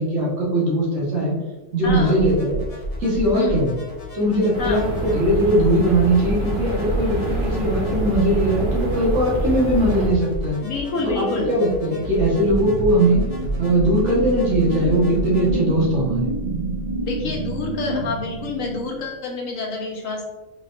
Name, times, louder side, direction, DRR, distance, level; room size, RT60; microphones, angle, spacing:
voice 1, 0.0-1.3 1.7-2.6 3.0-3.7 4.1-10.6 11.0-13.2 13.6-16.3, right 1 dB, 65° right, -5 dB, 1.5 m, -20 dB
voice 2, 1.8-2.2 3.3-3.7 4.6-4.8 10.6-11.6 17.0-20.2, left 3 dB, 85° left, 0 dB, 1.3 m, -28 dB
sound 1, 1.8-15.5, right 1 dB, 35° left, 0.8 m, -30 dB
sound 2, 4.5-10.1, equal, 25° right, 1.5 m, -27 dB
sound 3, 12.3-19.1, right 2 dB, 45° right, 0.5 m, -28 dB
4.1 x 3.8 x 2.5 m, 1.1 s
omnidirectional pair, 1.3 m